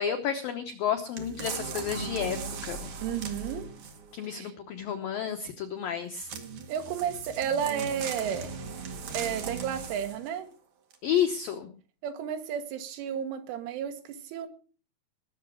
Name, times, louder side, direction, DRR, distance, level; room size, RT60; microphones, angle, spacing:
voice 1, 0.0-2.4 2.6-2.8 4.1-6.3 11.0-11.7, left 8 dB, 90° left, 6 dB, 2.0 m, -30 dB
sound 1, 1.2-4.2 6.2-10.3 10.9-11.0, right 5 dB, 50° right, 2.8 m, -38 dB
voice 2, 3.0-3.7 4.2-4.5 6.7-8.5 9.1-10.5 12.0-14.5, right 8 dB, 80° right, 6 dB, 4.0 m, -32 dB
20.5 x 7.1 x 6.2 m, 0.40 s
omnidirectional pair, 5.7 m